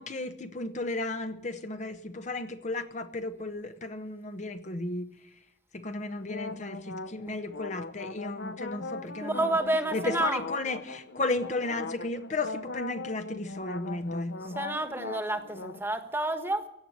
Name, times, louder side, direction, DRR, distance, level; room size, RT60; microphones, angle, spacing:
voice 1, 0.0-5.1 5.7-9.6 9.9-14.6, left 2 dB, 40° left, 8 dB, 0.9 m, -34 dB
sound 1, 6.2-15.8, left 3 dB, 80° left, 0.9 m, -40 dB
voice 2, 9.2-10.5 14.5-16.6, right 1 dB, 15° right, 8 dB, 1.4 m, -29 dB
16.5 x 7.7 x 9.9 m, 0.82 s
head